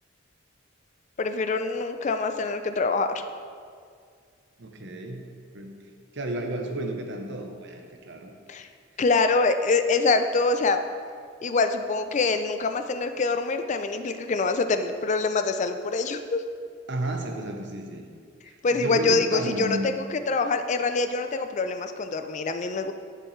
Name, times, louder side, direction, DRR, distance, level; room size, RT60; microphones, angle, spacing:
voice 1, 1.2-3.2 8.5-8.7 9.0-10.8 11.4-16.4 18.6-22.9, left 3 dB, 35° left, 8 dB, 0.4 m, -25 dB
voice 2, 4.6-5.2 5.5-5.7 6.1-8.3 16.9-18.1 18.4-19.9, right 1 dB, 60° right, 3 dB, 0.9 m, -32 dB
10.0 x 6.8 x 3.2 m, 2.1 s
head